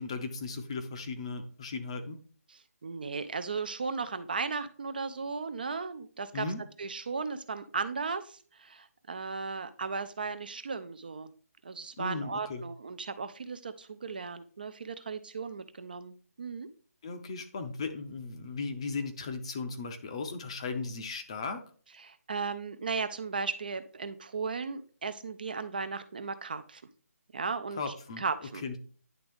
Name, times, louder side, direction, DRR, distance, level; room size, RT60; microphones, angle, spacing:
voice 1, 0.0-2.2 6.3-6.6 12.0-12.6 17.0-21.6 27.8-28.2 28.6-28.8, left 4 dB, 20° left, 7 dB, 0.6 m, -36 dB
voice 2, 2.5-6.5 6.8-11.3 11.6-16.7 22.0-26.8 27.3-28.6, right 4 dB, 35° right, 11 dB, 0.4 m, -36 dB
10.0 x 3.5 x 3.4 m, 0.42 s
hypercardioid pair, 175°, 9 cm